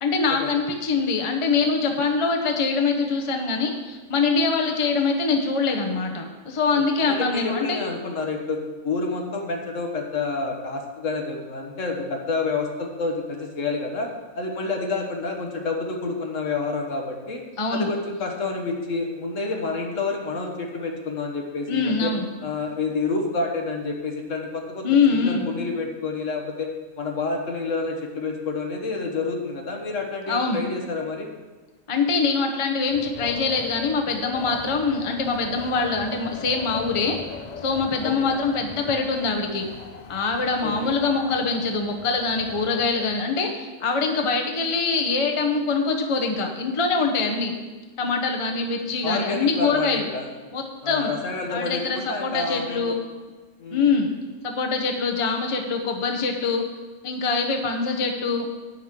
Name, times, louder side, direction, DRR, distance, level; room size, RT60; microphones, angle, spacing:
voice 1, 0.0-7.8 17.6-17.9 21.7-22.3 24.8-25.5 30.3-30.6 31.9-37.2 37.6-39.7 40.1-47.5 48.0-50.1 50.5-51.1 51.5-53.0 53.7-54.1 54.4-56.6 57.0-58.5, left 4 dB, 30° left, 2 dB, 0.8 m, -24 dB
voice 2, 7.2-14.1 14.3-17.4 17.7-22.1 22.4-24.8 25.1-26.7 27.0-31.3 38.0-38.4 40.6-41.0 49.0-50.2 50.8-52.9 53.6-53.9, left 3 dB, 70° left, 2 dB, 1.6 m, -29 dB
Wind, 32.8-43.2, left 5 dB, 55° left, 0.5 m, -40 dB
10.5 x 9.1 x 3.7 m, 1.3 s
omnidirectional pair, 1.4 m